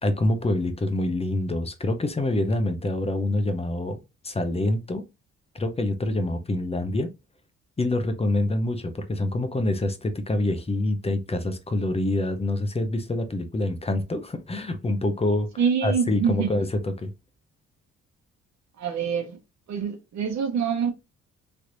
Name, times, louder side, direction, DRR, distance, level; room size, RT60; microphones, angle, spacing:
voice 1, 0.0-4.0 4.2-5.0 5.5-7.1 7.8-15.5 15.8-17.1, left 1 dB, 20° left, 0.7 m, -26 dB
voice 2, 15.6-16.5 18.8-19.4 19.7-20.9, right 7 dB, 65° right, 0.9 m, -25 dB
3.3 x 2.8 x 2.5 m
cardioid pair, 90°, 30 cm